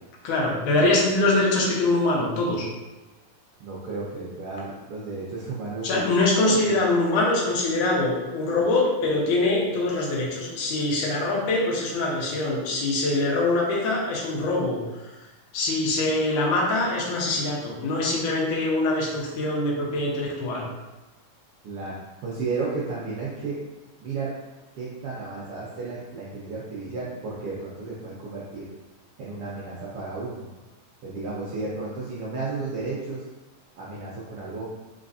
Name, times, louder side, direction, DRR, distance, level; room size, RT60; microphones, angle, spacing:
voice 1, 0.2-2.7 5.8-14.8 15.5-20.7, left 2 dB, 85° left, -3 dB, 2.4 m, -23 dB
voice 2, 3.6-6.0 6.5-6.8 21.6-21.9 22.2-23.6 24.0-24.3 24.7-28.7 29.2-30.5 31.0-33.2 33.8-34.6, right 3 dB, 75° right, -6 dB, 1.3 m, -33 dB
4.4 x 4.1 x 2.6 m, 1.1 s
omnidirectional pair, 3.4 m